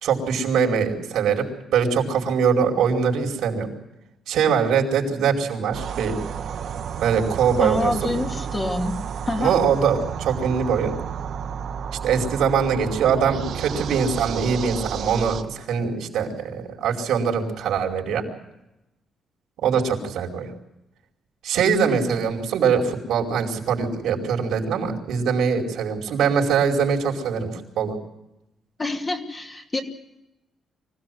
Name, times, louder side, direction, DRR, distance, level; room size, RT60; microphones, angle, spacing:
voice 1, 0.0-1.5 1.7-3.7 4.3-6.2 7.0-8.2 9.4-10.9 12.0-18.2 19.6-20.5 21.4-27.9, right 6 dB, 85° right, 1 dB, 4.8 m, -22 dB
sound 1, 5.7-15.4, right 8 dB, 60° right, 1.4 m, -31 dB
voice 2, 7.6-9.0 9.3-9.6 28.8-29.8, left 2 dB, 20° left, 2 dB, 2.6 m, -26 dB
25.0 x 16.5 x 7.8 m, 0.92 s
cardioid pair, 160°, 0 cm